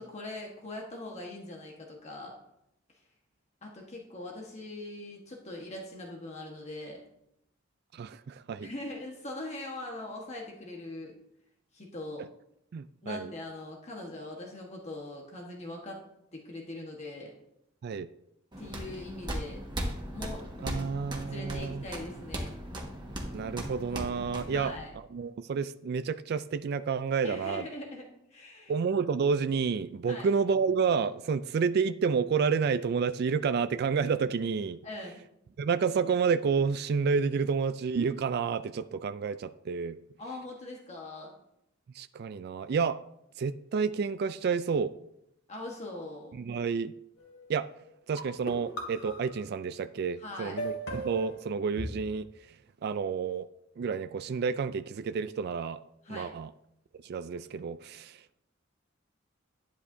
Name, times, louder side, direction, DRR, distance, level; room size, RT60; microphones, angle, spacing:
voice 1, 0.0-2.4 3.6-7.0 8.6-11.1 11.7-12.2 13.0-16.0 16.3-17.3 18.6-19.6 20.1-20.9 21.3-22.6 24.5-24.9 27.2-28.8 30.1-30.3 34.8-35.2 40.2-41.3 45.5-46.4 50.2-50.6 56.0-56.3, left 2 dB, 35° left, -1 dB, 1.3 m, -41 dB
voice 2, 7.9-8.7 12.7-13.3 17.8-18.1 20.6-21.8 23.3-24.7 25.1-27.7 28.7-34.8 35.6-40.0 41.9-43.0 43.4-44.9 46.3-46.9 47.5-47.7 48.1-52.3 52.8-53.5 53.8-55.8 56.1-56.5 57.0-58.2, right 5 dB, 55° right, 11 dB, 0.3 m, -30 dB
sound 1, 18.5-24.8, equal, 25° right, 1.6 m, -38 dB
sound 2, 47.2-47.6 48.2-49.6 50.6-51.9, right 1 dB, 85° left, 3.0 m, -38 dB
11.0 x 10.0 x 2.7 m, 0.80 s
head